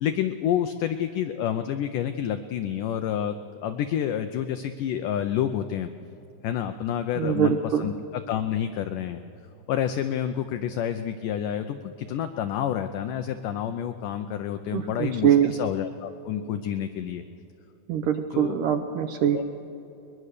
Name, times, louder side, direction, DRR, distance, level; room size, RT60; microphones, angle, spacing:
voice 1, 0.0-3.4 3.6-5.9 6.4-9.2 9.7-17.2 18.3-18.5 19.3-19.4, left 10 dB, 85° left, 8 dB, 1.8 m, -29 dB
voice 2, 7.2-7.9 14.7-15.6 17.9-19.4, right 9 dB, 75° right, 7 dB, 2.0 m, -23 dB
22.0 x 21.5 x 6.6 m, 3.0 s
omnidirectional pair, 4.6 m